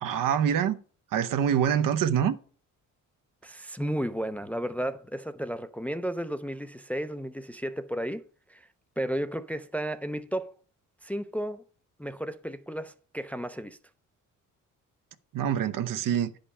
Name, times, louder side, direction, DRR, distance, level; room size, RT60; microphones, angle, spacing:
voice 1, 0.0-0.8 1.1-2.4 15.3-16.3, right 8 dB, 75° right, 0.9 m, -25 dB
voice 2, 3.4-8.2 8.5-8.7 9.0-10.5 11.0-11.6 12.0-13.8, equal, 5° left, 0.4 m, -33 dB
10.0 x 5.3 x 5.5 m
cardioid pair, 130°, 33 cm